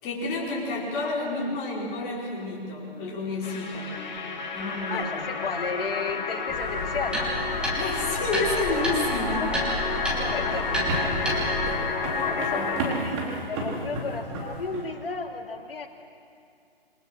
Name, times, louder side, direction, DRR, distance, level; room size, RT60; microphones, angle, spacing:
voice 1, 0.0-4.0 4.5-5.2 7.7-9.5 12.1-12.2 12.5-12.7, left 2 dB, 25° left, -4 dB, 5.3 m, -30 dB
sound 1, 3.4-12.8, left 4 dB, 45° left, 2.9 m, -30 dB
voice 2, 4.9-7.2 10.1-11.5 12.1-15.9, left 4 dB, 65° left, 3 dB, 2.9 m, -34 dB
sound 2, 6.5-11.8, equal, 5° right, 3.1 m, -30 dB
sound 3, 9.2-14.9, right 2 dB, 25° right, 4.0 m, -33 dB
28.0 x 22.0 x 6.4 m, 2.4 s
hypercardioid pair, 150°, 31 cm